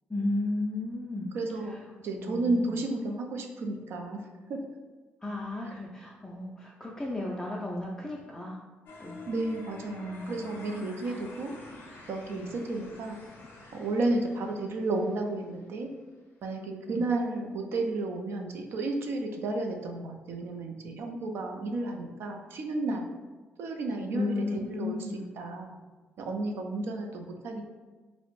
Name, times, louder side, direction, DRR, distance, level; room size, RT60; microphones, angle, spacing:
voice 1, 0.1-1.3 1.6-1.8 2.2-2.8 5.2-8.6 9.0-9.2 10.0-10.3 11.0-11.2 12.3-12.5 16.9-17.1 24.1-25.3, left 2 dB, 10° left, -3 dB, 0.3 m, -34 dB
voice 2, 1.3-1.8 2.0-4.6 9.3-11.5 12.1-13.2 13.7-15.9 16.4-23.1 23.6-25.8 26.2-27.7, right 2 dB, 70° right, 3 dB, 0.4 m, -32 dB
sound 1, 8.9-15.8, left 2 dB, 65° left, 0.5 m, -49 dB
2.4 x 2.0 x 3.0 m, 1.3 s
cardioid pair, 80°, 4 cm